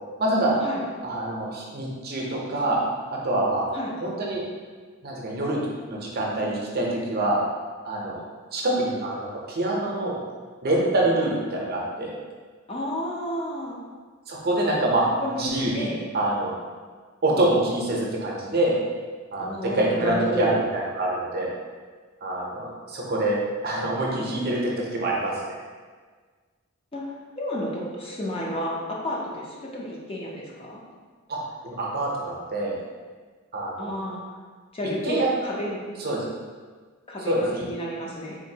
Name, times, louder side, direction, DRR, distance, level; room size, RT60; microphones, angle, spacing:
voice 1, 0.2-0.5 1.0-2.8 3.1-3.7 4.0-4.4 5.0-5.6 5.9-7.4 7.8-8.2 8.5-10.2 10.6-11.4 11.7-12.1 14.3-15.0 15.3-16.5 17.2-18.8 19.3-21.5 22.2-23.4 23.6-25.6 31.3-32.8 33.5-34.0 35.0-35.3 36.0-36.2 37.3-37.7, right 1 dB, 45° right, -3 dB, 0.6 m, -25 dB
voice 2, 12.7-13.8 15.2-16.0 19.4-20.6 26.9-27.0 27.4-30.8 33.8-34.2 34.7-35.8 37.1-38.4, equal, 25° left, -3 dB, 0.5 m, -31 dB
3.8 x 2.5 x 2.7 m, 1.5 s
head